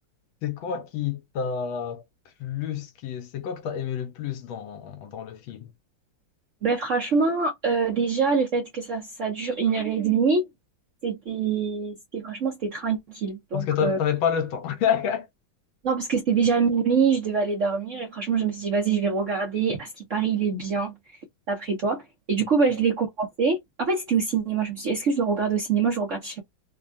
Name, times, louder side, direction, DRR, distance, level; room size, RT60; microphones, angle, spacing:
voice 1, 0.4-2.0 2.4-5.7 13.5-15.3, left 8 dB, 75° left, 1.5 m, -28 dB
voice 2, 6.6-10.5 11.0-14.0 15.8-20.9 21.5-22.0 22.3-26.4, right 5 dB, 55° right, 0.8 m, -25 dB
3.5 x 2.2 x 2.5 m
omnidirectional pair, 2.3 m